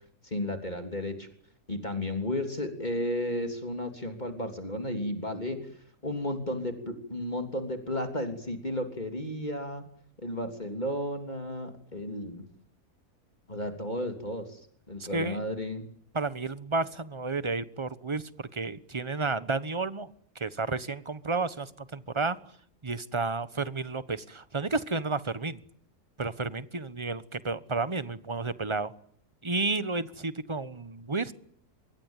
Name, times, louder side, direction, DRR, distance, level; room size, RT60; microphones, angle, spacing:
voice 1, 0.2-1.3 1.7-9.8 10.2-12.4 13.5-15.8, left 1 dB, 25° left, 5 dB, 3.4 m, -33 dB
voice 2, 15.0-15.4 16.1-20.1 20.3-22.4 22.8-25.6 26.2-28.9 29.4-31.3, right 3 dB, 20° right, 14 dB, 1.1 m, -31 dB
25.5 x 23.0 x 9.1 m, 0.63 s
omnidirectional pair, 1.7 m